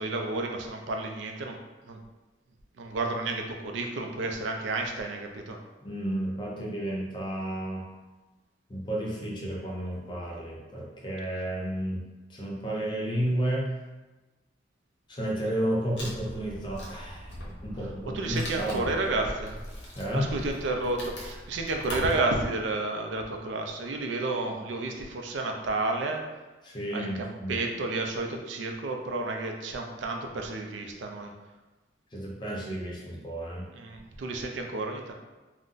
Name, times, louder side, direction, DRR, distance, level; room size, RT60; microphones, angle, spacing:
voice 1, 0.0-1.6 1.9-2.0 2.8-5.6 18.1-19.6 20.1-26.2 26.9-31.3 33.7-35.1, right 2 dB, 75° right, 3 dB, 0.4 m, -31 dB
voice 2, 5.8-7.9 8.7-12.0 12.3-13.7 15.1-17.3 17.6-18.9 19.9-20.3 26.6-27.6 32.1-33.7, right 1 dB, 25° left, -3 dB, 0.5 m, -32 dB
Wood, 16.0-22.2, equal, 75° left, 0.8 m, -41 dB
2.5 x 2.1 x 3.7 m, 1.2 s
head